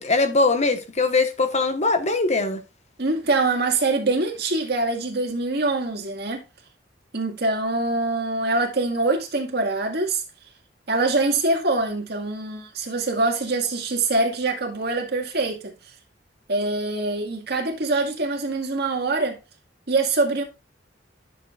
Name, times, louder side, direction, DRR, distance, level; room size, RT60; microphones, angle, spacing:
voice 1, 0.0-2.6, left 3 dB, 40° left, 1.3 m, -21 dB
voice 2, 3.0-6.4 7.1-10.2 10.9-15.7 16.5-19.4 19.9-20.4, right 2 dB, 60° right, 2.0 m, -24 dB
10.5 x 6.9 x 2.5 m
head